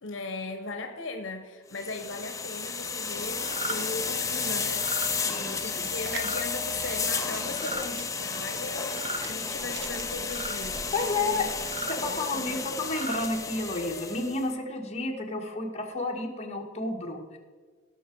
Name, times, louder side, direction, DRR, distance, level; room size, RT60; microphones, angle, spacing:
voice 1, 0.0-5.3 5.6-11.5 11.8-12.7, left 3 dB, 75° left, 6 dB, 1.0 m, -38 dB
sound 1, 1.7-14.5, left 5 dB, 15° left, 0.8 m, -32 dB
sound 2, 3.4-3.8 4.7-5.1 6.1-6.4 7.5-7.8 8.9-9.3 10.3-10.6 11.6-12.0 12.8-13.2, right 3 dB, 35° right, 0.9 m, -36 dB
voice 2, 5.3-5.8 10.9-11.4 11.9-17.4, left 2 dB, 35° left, 0 dB, 1.6 m, -31 dB
sound 3, 6.0-11.1, right 7 dB, 65° right, 0.8 m, -45 dB
18.0 x 6.1 x 4.6 m, 1.5 s
head